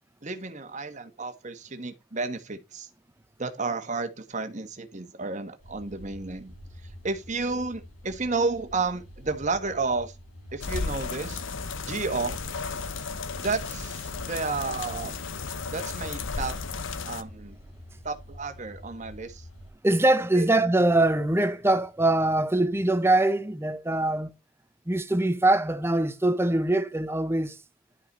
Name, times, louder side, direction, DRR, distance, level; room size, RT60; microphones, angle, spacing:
voice 1, 0.2-2.9 3.4-6.5 7.0-10.1 10.5-11.4 11.9-12.4 13.4-15.1 15.7-16.6 17.1-17.6 18.0-19.4 20.4-20.5, right 3 dB, 35° right, 1.4 m, -31 dB
sound 1, 5.6-19.7, equal, 85° left, 4.5 m, -48 dB
sound 2, 10.6-17.2, left 4 dB, 65° left, 0.9 m, -34 dB
voice 2, 19.8-24.3 24.9-27.6, right 2 dB, 10° right, 0.7 m, -23 dB
11.0 x 5.7 x 4.1 m
head